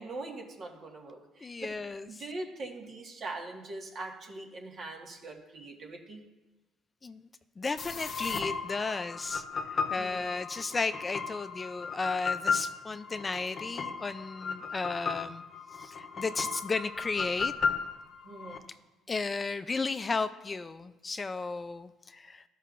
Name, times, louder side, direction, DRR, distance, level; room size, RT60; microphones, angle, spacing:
voice 1, 0.0-1.7 2.1-6.2 10.0-10.2 18.2-18.6, right 2 dB, 55° right, 1 dB, 1.6 m, -42 dB
voice 2, 1.4-2.1 7.0-7.2 7.6-9.4 9.7-15.4 15.8-17.5 19.1-22.4, left 4 dB, 30° left, 11 dB, 0.4 m, -34 dB
sound 1, 7.8-18.6, left 5 dB, 50° left, 0.8 m, -35 dB
12.5 x 5.4 x 2.5 m, 1.1 s
supercardioid pair, 65°, 0 cm